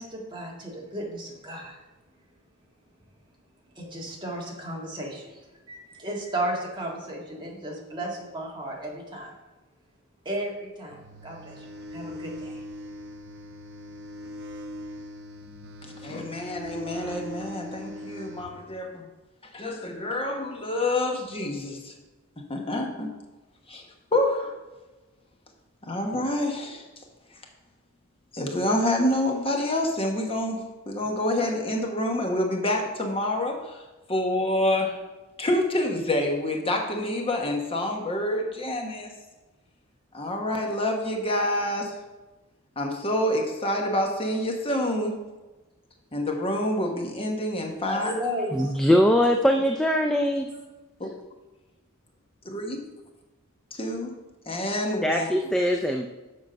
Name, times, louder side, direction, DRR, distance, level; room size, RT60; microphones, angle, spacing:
voice 1, 0.0-1.8 3.7-9.3 10.3-12.6 47.9-48.8, right 1 dB, 20° right, -2 dB, 1.8 m, -34 dB
sound 1, 10.9-18.5, left 1 dB, 60° right, 0.8 m, -40 dB
voice 2, 15.8-19.1 19.5-21.9 22.4-23.1 23.7-23.8 24.1-24.5 25.9-26.9 28.3-33.8 34.1-35.0 35.4-39.1 40.1-42.0 42.8-45.2 46.1-48.1 51.0-51.1 52.5-52.8 53.7-54.1 54.5-55.3, left 1 dB, 25° left, 2 dB, 1.1 m, -27 dB
voice 3, 48.5-50.5 55.0-56.1, equal, 5° left, 3 dB, 0.4 m, -22 dB
7.6 x 5.8 x 5.2 m, 1.1 s
head